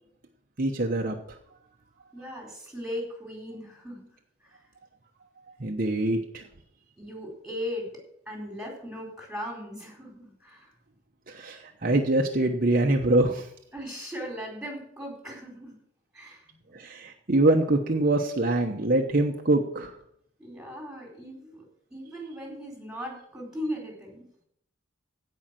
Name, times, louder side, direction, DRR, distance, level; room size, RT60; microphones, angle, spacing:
voice 1, 0.6-1.2 5.6-6.4 11.3-13.5 16.7-19.9, right 2 dB, 45° right, 2 dB, 1.0 m, -24 dB
voice 2, 2.1-4.1 4.4-4.6 7.0-7.9 8.3-10.7 13.7-15.8 16.1-16.6 20.4-21.6 21.9-24.3, equal, 5° right, 0 dB, 4.3 m, -38 dB
16.5 x 5.6 x 7.7 m, 0.71 s
head